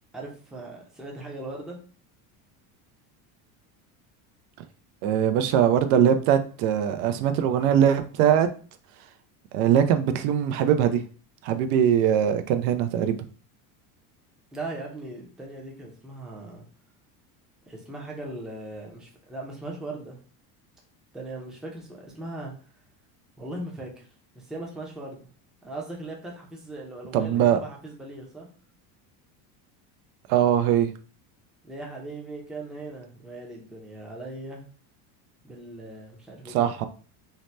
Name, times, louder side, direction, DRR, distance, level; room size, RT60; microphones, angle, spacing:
voice 1, 0.1-1.8 14.5-16.6 17.7-20.2 21.1-22.5 23.4-24.1 24.3-25.2 25.6-28.5 31.6-34.7 35.4-36.7, right 2 dB, ahead, 0.4 m, -39 dB
voice 2, 5.0-8.5 9.5-11.0 11.4-13.2 27.1-27.6 30.3-30.9 36.5-36.9, right 9 dB, 75° right, 0.5 m, -21 dB
2.8 x 2.1 x 3.1 m
supercardioid pair, 125°, 44 cm